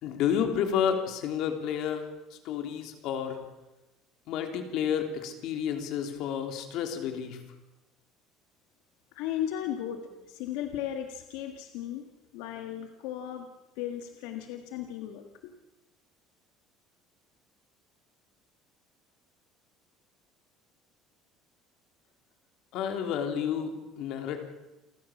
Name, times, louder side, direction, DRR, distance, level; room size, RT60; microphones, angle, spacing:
voice 1, 0.0-3.4 4.3-7.4 22.7-24.4, left 8 dB, 60° left, 5 dB, 3.4 m, -30 dB
voice 2, 9.1-12.1 12.3-13.5 13.8-15.5, left 11 dB, 85° left, 5 dB, 1.8 m, -36 dB
29.0 x 14.5 x 7.3 m, 1.0 s
cardioid pair, 155°, 0 cm